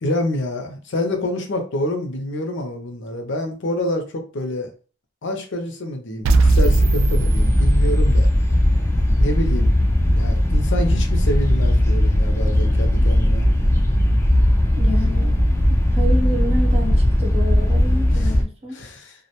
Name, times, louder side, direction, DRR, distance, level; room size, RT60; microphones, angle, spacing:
voice 1, 0.0-4.7 5.2-8.3 9.2-9.7 10.1-13.5 18.8-19.1, left 1 dB, 60° left, 0.6 m, -27 dB
sound 1, 6.2-8.3, right 3 dB, 70° right, 0.3 m, -19 dB
sound 2, 6.4-18.4, left 1 dB, 15° left, 0.3 m, -18 dB
voice 2, 14.7-15.4 15.7-18.8, equal, 30° right, 0.7 m, -29 dB
2.3 x 2.1 x 2.8 m
head